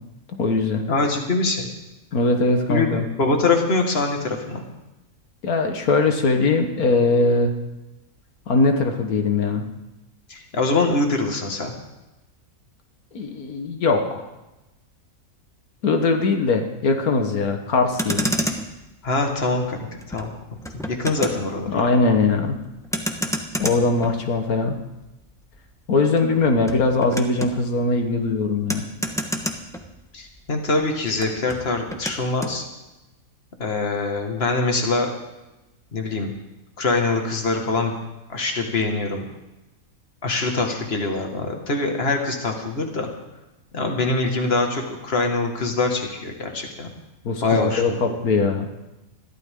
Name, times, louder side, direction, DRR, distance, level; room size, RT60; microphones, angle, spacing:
voice 1, 0.3-0.8 2.1-3.1 5.4-7.5 8.5-9.6 13.1-14.3 15.8-18.3 21.7-22.6 23.6-24.8 25.9-28.8 47.3-48.7, left 3 dB, 90° left, 4 dB, 1.9 m, -21 dB
voice 2, 0.9-1.7 2.7-4.6 10.3-11.7 19.0-19.8 20.1-20.3 20.7-21.9 30.1-32.6 33.6-35.1 35.9-36.3 36.8-37.9 38.3-39.3 40.2-43.1 43.7-46.9 47.4-48.2, left 3 dB, 45° left, 3 dB, 2.2 m, -23 dB
Motor vehicle (road), 17.9-30.4 30.7-32.6, equal, ahead, 1.2 m, -31 dB
21.5 x 14.5 x 3.8 m, 1.0 s
omnidirectional pair, 1.5 m